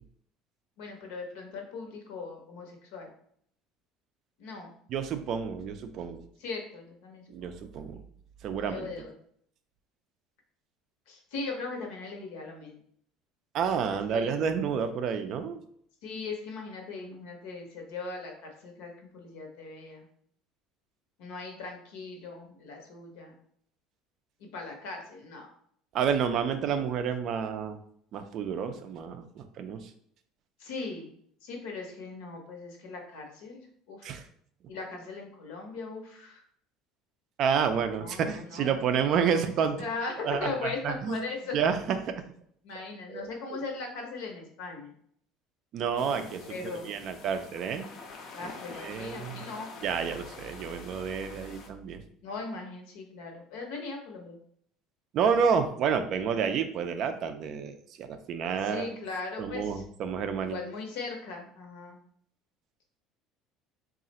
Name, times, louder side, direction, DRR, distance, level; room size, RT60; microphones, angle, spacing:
voice 1, 0.8-3.1 4.4-4.7 6.4-7.7 8.6-9.1 11.1-12.8 13.9-14.4 16.0-20.0 21.2-23.4 24.5-25.5 30.6-31.1 31.4-34.2 34.7-36.4 38.0-38.7 39.2-39.4 39.7-41.6 42.6-44.9 46.5-46.9 48.3-49.7 52.2-54.4 58.6-59.8 60.4-62.0, left 4 dB, 75° left, 2 dB, 1.0 m, -39 dB
voice 2, 4.9-6.2 7.3-8.0 8.4-8.9 13.5-15.6 25.9-27.8 28.1-29.9 34.0-34.2 37.4-39.8 40.2-40.5 40.8-41.2 41.5-41.8 42.1-42.2 43.1-43.2 43.5-43.6 45.7-46.4 46.9-47.9 48.4-48.5 48.8-49.4 49.8-52.0 55.1-58.9 59.4-60.6, right 7 dB, 40° right, 8 dB, 0.3 m, -29 dB
sound 1, 46.0-51.7, left 4 dB, 35° left, 0.5 m, -46 dB
3.7 x 2.4 x 4.1 m, 0.64 s
cardioid pair, 175°, 0 cm